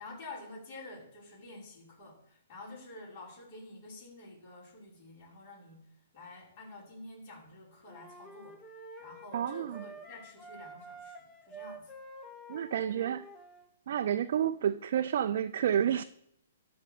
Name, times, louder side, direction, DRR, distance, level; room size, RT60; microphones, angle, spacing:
voice 1, 0.0-5.9 6.1-8.6 9.0-11.9, left 2 dB, 40° left, 6.0 m, -49 dB
sound 1, 7.9-13.7, right 1 dB, 20° left, 1.7 m, -49 dB
voice 2, 9.3-9.8 12.5-13.3 13.9-16.0, right 9 dB, 55° right, 0.5 m, -30 dB
12.5 x 5.2 x 8.4 m
figure-of-eight pair, 125°, 0 cm